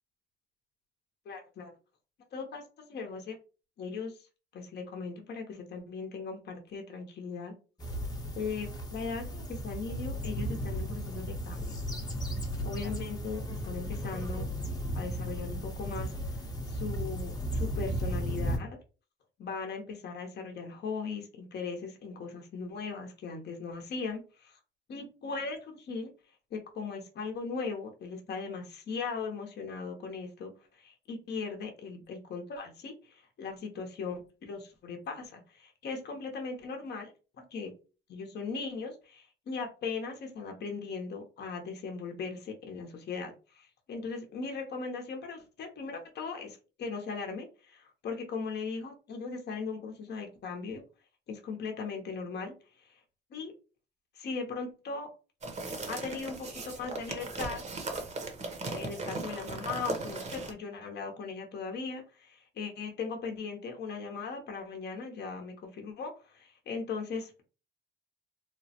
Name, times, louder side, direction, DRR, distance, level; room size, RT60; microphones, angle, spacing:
voice 1, 1.2-1.7 2.3-2.6 2.9-3.4 3.8-4.3 4.5-7.5 8.3-11.7 12.6-14.5 14.9-16.1 16.7-18.8 19.4-24.6 24.9-26.1 26.5-37.7 38.1-50.8 51.3-53.0 53.3-53.5 54.1-55.1 55.9-57.6 58.7-67.4, left 4 dB, 55° left, 3 dB, 0.7 m, -38 dB
sound 1, 7.8-18.6, equal, 20° left, 0.7 m, -35 dB
sound 2, 55.4-60.5, right 3 dB, 35° right, 0.7 m, -37 dB
3.1 x 2.0 x 2.8 m, 0.34 s
cardioid pair, 90°, 20 cm